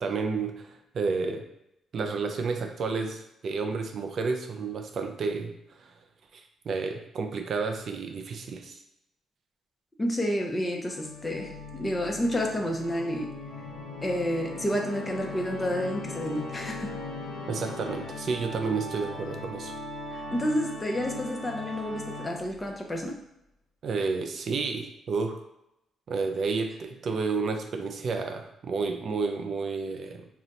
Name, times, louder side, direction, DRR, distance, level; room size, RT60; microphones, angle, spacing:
voice 1, 0.0-1.5 1.9-5.9 6.3-8.8 17.5-19.7 23.8-25.4 26.1-30.3, right 4 dB, 55° right, 5 dB, 0.4 m, -31 dB
voice 2, 10.0-13.4 14.0-16.9 20.3-23.2, equal, 20° left, 1 dB, 0.6 m, -30 dB
Organ, 10.9-22.7, left 2 dB, 85° left, 0.7 m, -39 dB
2.5 x 2.2 x 4.0 m, 0.85 s
cardioid pair, 90°, 0 cm